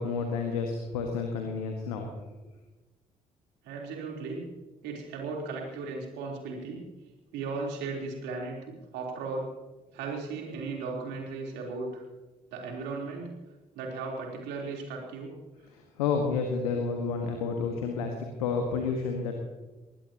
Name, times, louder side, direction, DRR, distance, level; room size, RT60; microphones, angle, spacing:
voice 1, 0.0-2.1 15.7-19.4, left 5 dB, 80° left, 3 dB, 1.6 m, -30 dB
voice 2, 3.6-4.5 4.8-6.8 7.3-9.5 9.9-12.0 12.5-13.3 13.7-15.3, right 4 dB, 70° right, 0 dB, 3.9 m, -36 dB
22.5 x 19.5 x 3.0 m, 1.2 s
figure-of-eight pair, 45°, 18 cm